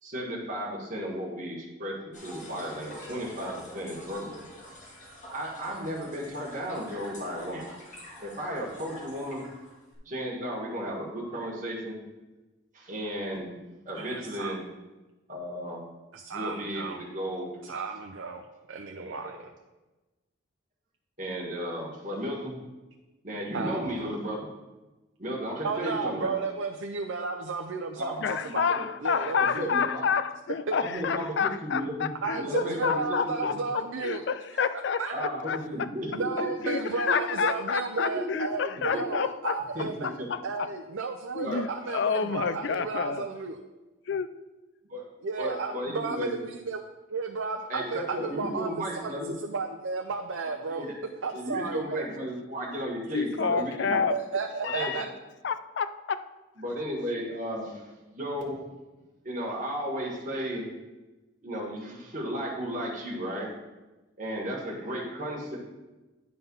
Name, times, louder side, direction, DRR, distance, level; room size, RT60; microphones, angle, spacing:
voice 1, 0.0-4.4 5.3-7.6 8.2-9.4 10.0-12.0 12.7-13.5 13.8-14.6 15.3-15.8 16.3-17.6 18.9-19.4 21.2-22.5 23.2-24.5 25.2-26.3 28.0-29.3 29.6-30.0 30.8-33.6 35.1-36.5 37.1-37.2 38.0-38.2 38.9-39.0 39.7-40.3 41.4-41.6 44.8-45.0 45.4-46.3 47.7-49.3 50.7-50.9 51.3-54.0 54.7-55.0 56.6-58.6 59.2-60.7 61.4-63.5 64.2-65.6, equal, 40° right, -3 dB, 1.7 m, -34 dB
sound 1, 2.1-9.9, equal, 35° left, 2.1 m, -46 dB
voice 2, 13.9-14.6 16.1-17.0 17.6-19.5 23.5-24.0 25.6-28.7 29.0-29.7 30.7-30.8 32.2-34.2 35.0-35.1 36.1-40.2 40.4-43.6 45.2-46.8 47.1-50.8 51.2-52.0 53.9-55.1, right 4 dB, 75° right, 3 dB, 0.6 m, -33 dB
voice 3, 28.2-35.9 36.4-40.7 41.3-43.3 44.1-44.3 53.1-54.2 54.6-55.0 55.4-56.2, left 6 dB, 60° left, 13 dB, 0.4 m, -29 dB
9.6 x 3.9 x 5.4 m, 1.1 s
head